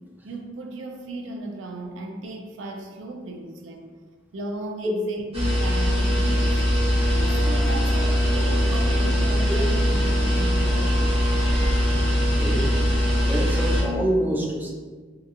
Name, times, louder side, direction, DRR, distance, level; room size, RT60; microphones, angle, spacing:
voice 1, 0.2-3.9 4.3-6.6 7.3-11.2, right 2 dB, 85° right, 2 dB, 0.4 m, -36 dB
sound 1, 5.3-13.8, equal, 30° right, 0.7 m, -21 dB
sound 2, 7.1-13.7, equal, 75° left, 0.6 m, -37 dB
voice 2, 12.3-12.7 13.2-14.7, right 1 dB, 10° right, -1 dB, 0.3 m, -26 dB
2.7 x 2.4 x 2.5 m, 1.5 s
head